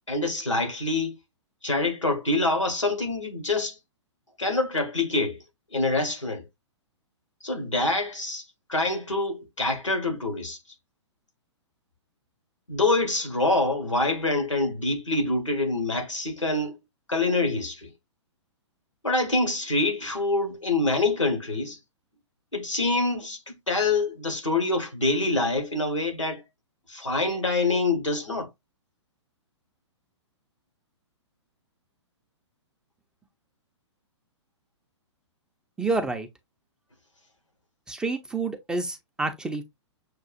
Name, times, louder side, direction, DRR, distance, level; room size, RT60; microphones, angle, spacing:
voice 1, 0.1-1.1 1.6-3.7 4.4-5.4 5.7-6.4 7.4-8.4 8.7-10.6 12.7-16.7 17.1-17.9 19.0-21.8 22.5-26.4 26.9-28.5, left 2 dB, 85° left, 1.3 m, -25 dB
voice 2, 35.8-36.3 37.9-39.6, right 3 dB, 5° right, 0.4 m, -28 dB
6.6 x 2.4 x 2.4 m
figure-of-eight pair, 115°, 15 cm